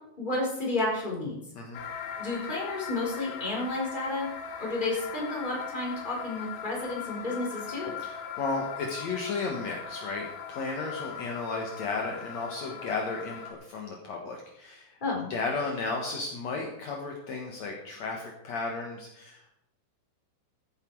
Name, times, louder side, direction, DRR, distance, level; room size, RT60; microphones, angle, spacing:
voice 1, 0.2-1.4 2.2-4.3 4.6-7.9 15.0-15.3, left 2 dB, 10° left, -2 dB, 3.6 m, -31 dB
sound 1, 1.7-13.5, left 7 dB, 85° left, 4.2 m, -40 dB
voice 2, 8.0-15.0 15.3-19.5, left 3 dB, 65° left, 0 dB, 1.7 m, -34 dB
15.0 x 10.5 x 4.7 m, 0.80 s
omnidirectional pair, 5.6 m